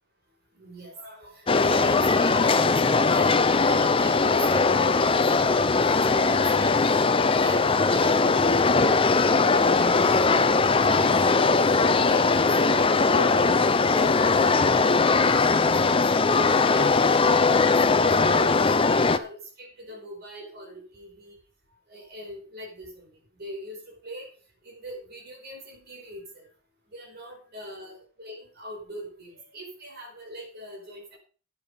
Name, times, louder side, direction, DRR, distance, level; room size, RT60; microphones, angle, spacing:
voice 1, 0.5-11.7 12.0-14.2 14.5-21.4 21.9-24.3 24.6-26.5 26.9-31.2, equal, 50° right, 1 dB, 5.1 m, -41 dB
sound 1, 1.5-19.2, left 4 dB, 25° left, 0.6 m, -20 dB
11.5 x 9.8 x 5.3 m, 0.40 s
head